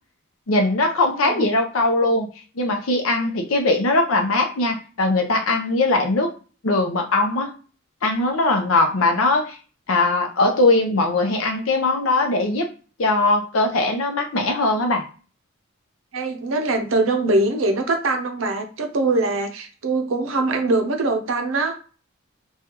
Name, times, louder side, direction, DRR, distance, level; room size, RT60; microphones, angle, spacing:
voice 1, 0.5-2.3 2.6-6.3 6.6-7.5 8.0-9.6 9.9-12.7 13.0-15.0, left 2 dB, 80° left, 4 dB, 0.7 m, -20 dB
voice 2, 1.2-1.5 3.1-3.2 16.1-21.8, right 2 dB, 70° right, 6 dB, 0.6 m, -22 dB
3.2 x 2.3 x 2.9 m, 0.37 s
head